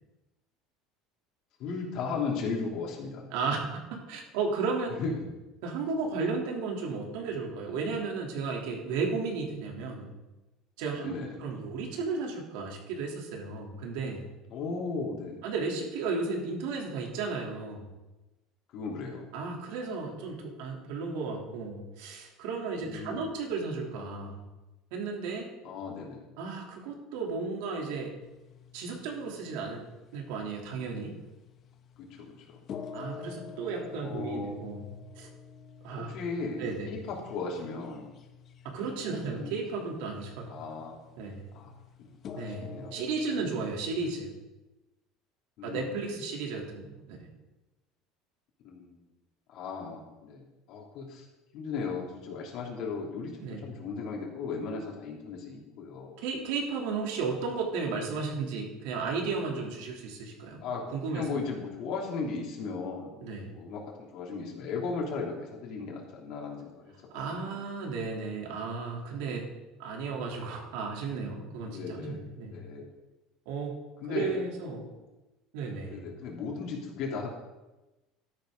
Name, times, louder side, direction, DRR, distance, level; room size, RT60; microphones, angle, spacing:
voice 1, 1.6-3.2 5.0-5.2 11.0-11.3 14.5-15.4 18.7-19.2 22.8-23.3 25.6-26.2 32.0-32.6 34.0-34.6 36.0-38.0 39.1-39.5 40.5-41.0 41.5-41.7 42.0-42.9 45.6-45.9 48.6-48.9 49.5-50.4 50.7-51.2 51.5-53.3 53.6-56.2 60.6-63.1 63.5-66.9 67.3-67.6 71.6-72.2 72.5-72.9 74.0-74.3 75.9-77.3, left 4 dB, 55° left, -1 dB, 3.2 m, -36 dB
voice 2, 3.3-4.9 5.6-10.1 10.8-11.1 11.4-14.3 15.4-17.9 19.3-24.4 24.9-25.5 26.4-28.1 28.7-29.8 30.1-31.2 32.9-35.3 35.8-36.1 36.6-37.0 38.6-40.5 41.1-41.5 42.3-44.3 45.6-47.3 53.4-53.7 56.2-60.6 60.9-61.3 63.2-63.5 67.1-69.4 69.8-72.6 73.4-73.8 74.0-74.8 75.5-76.0, right 4 dB, 80° right, 0 dB, 3.2 m, -34 dB
sound 1, 28.2-43.6, left 6 dB, 35° left, 0.8 m, -48 dB
13.0 x 10.5 x 3.9 m, 1.1 s
cardioid pair, 155°, 0 cm